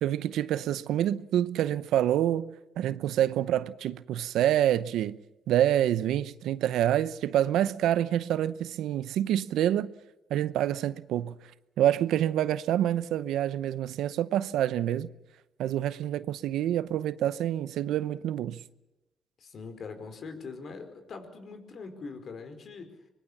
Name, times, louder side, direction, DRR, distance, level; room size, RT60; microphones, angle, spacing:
voice 1, 0.0-5.2 5.5-9.9 10.3-11.4 11.8-15.1 15.6-18.6, right 11 dB, 85° right, 0.8 m, -27 dB
voice 2, 19.4-22.9, left 4 dB, 55° left, 4.7 m, -42 dB
24.5 x 22.0 x 7.3 m
cardioid pair, 90°, 0 cm